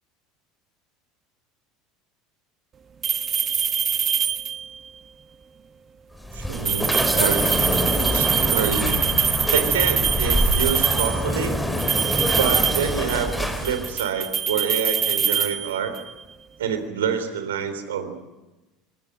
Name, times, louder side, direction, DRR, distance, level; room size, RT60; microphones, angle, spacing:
sound 1, 3.0-4.8 6.5-11.3 11.8-13.3 13.6-16.1, right 7 dB, 35° right, 1.3 m, -24 dB
sound 2, 6.2-14.0, equal, 5° left, 4.2 m, -25 dB
voice 1, 6.3-7.4 7.7-9.0 9.5-11.6 12.4-16.0 16.6-18.1, right 7 dB, 75° right, 9 dB, 3.7 m, -27 dB
26.0 x 24.5 x 6.5 m, 1.1 s
figure-of-eight pair, 70°, 0 cm